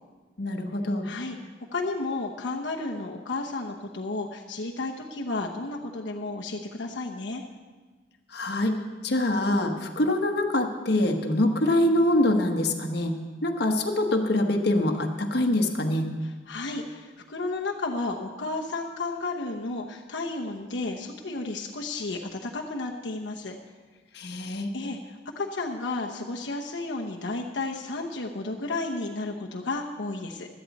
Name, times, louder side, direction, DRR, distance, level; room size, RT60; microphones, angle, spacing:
voice 1, 0.4-1.1 8.3-8.8 9.0-13.1 13.4-16.1 24.1-24.7, left 1 dB, 65° left, 3 dB, 1.2 m, -24 dB
voice 2, 1.0-1.3 1.7-7.4 16.2-23.6 24.7-30.5, left 3 dB, 85° left, 0 dB, 1.0 m, -32 dB
16.5 x 12.0 x 4.1 m, 1.3 s
head